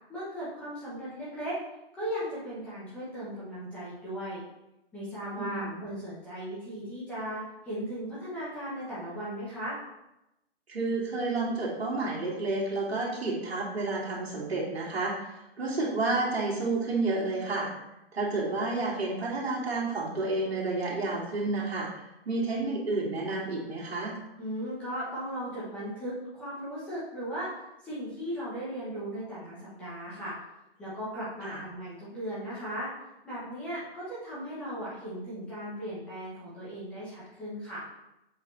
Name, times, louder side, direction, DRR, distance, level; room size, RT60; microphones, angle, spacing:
voice 1, 0.1-1.6 1.9-4.4 4.9-9.8 24.4-27.6 27.8-30.3 30.8-32.9 33.2-37.8, equal, 5° left, -10 dB, 0.9 m, -37 dB
voice 2, 5.4-5.8 10.7-17.7 18.1-21.9 22.2-24.2 31.4-31.6, right 3 dB, 80° right, -5 dB, 2.6 m, -30 dB
7.4 x 4.2 x 4.4 m, 0.91 s
hypercardioid pair, 170°, 31 cm